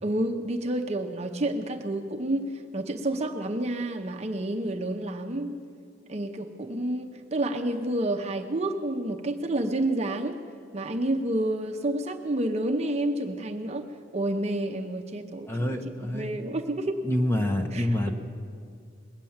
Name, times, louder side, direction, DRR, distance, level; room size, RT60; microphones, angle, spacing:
voice 1, 0.0-5.6 6.1-10.4 10.7-13.9 14.1-15.7 16.1-17.0 17.7-18.1, right 1 dB, 35° right, 4 dB, 0.7 m, -29 dB
voice 2, 15.5-16.3 17.0-18.1, left 1 dB, 10° left, 3 dB, 0.9 m, -27 dB
21.0 x 8.9 x 7.2 m, 2.2 s
head